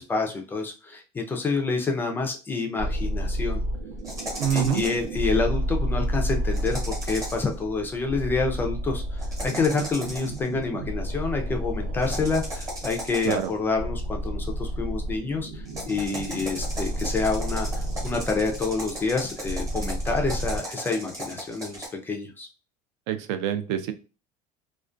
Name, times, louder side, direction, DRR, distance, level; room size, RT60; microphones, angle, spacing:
voice 1, 0.0-3.6 4.5-22.5, left 4 dB, 15° left, 3 dB, 0.3 m, -28 dB
sound 1, 2.8-20.6, equal, 85° right, 0.8 m, -31 dB
sound 2, 4.0-5.1 6.5-7.5 9.2-10.5 12.0-13.6 15.7-21.9, equal, 20° right, 0.9 m, -36 dB
voice 2, 4.4-4.8 13.2-13.5 23.1-23.9, right 9 dB, 70° right, 9 dB, 0.4 m, -26 dB
2.3 x 2.1 x 2.4 m, 0.32 s
cardioid pair, 160°, 16 cm